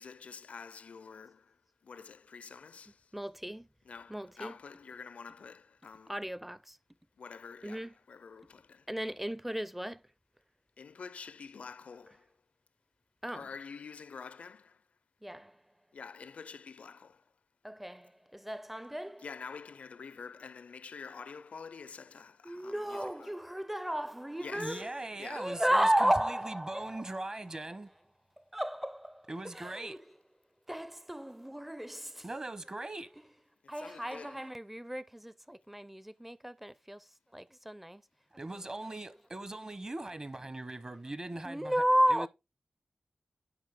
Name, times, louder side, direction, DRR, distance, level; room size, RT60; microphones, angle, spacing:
voice 1, 0.0-1.4 1.9-2.9 3.9-6.1 7.2-8.8 10.8-12.2 13.3-14.7 15.9-17.2 19.2-23.3 24.4-24.8 25.2-25.5 33.8-34.4, left 5 dB, 75° left, 0.5 m, -47 dB
voice 2, 3.1-3.7 4.1-4.6 6.1-6.8 7.6-7.9 8.9-10.0 13.2-13.6 15.2-15.6 17.6-19.4 22.4-25.0 25.4-27.3 27.7-27.8 28.5-30.0 30.7-32.6 32.9-33.0 33.7-37.0 37.3-38.0 38.5-38.6 39.5-39.6 41.4-42.3, equal, 5° right, 0.5 m, -34 dB
voice 3, 24.5-27.9 29.3-30.0 32.2-33.1 38.4-41.8 42.1-42.3, right 2 dB, 30° right, 1.0 m, -40 dB
10.0 x 4.6 x 3.7 m
cardioid pair, 65°, 2 cm